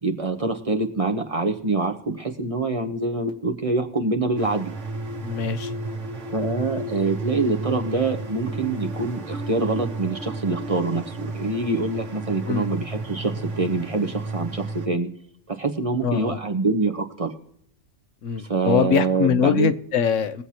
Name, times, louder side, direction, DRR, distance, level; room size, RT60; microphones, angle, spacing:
voice 1, 0.0-4.7 6.3-15.1 15.5-17.3 18.4-19.7, right 3 dB, 30° right, 5 dB, 1.0 m, -25 dB
sound 1, 4.4-14.9, right 2 dB, 75° right, 1.6 m, -32 dB
voice 2, 5.2-5.7 12.4-12.7 16.0-16.4 18.2-20.4, left 8 dB, 85° left, 11 dB, 1.1 m, -23 dB
22.0 x 7.9 x 2.9 m, 0.74 s
omnidirectional pair, 1.2 m